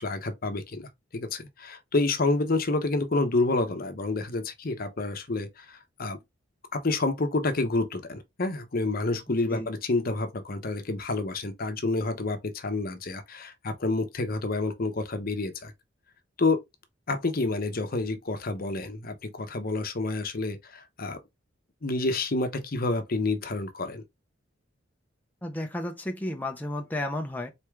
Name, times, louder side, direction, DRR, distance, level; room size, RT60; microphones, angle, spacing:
voice 1, 0.0-6.2 6.7-15.7 16.4-16.6 17.1-21.2 21.8-24.0, left 2 dB, 50° left, 0.9 m, -29 dB
voice 2, 9.3-9.7 25.4-27.5, left 1 dB, 10° left, 0.7 m, -33 dB
4.3 x 3.5 x 3.2 m
head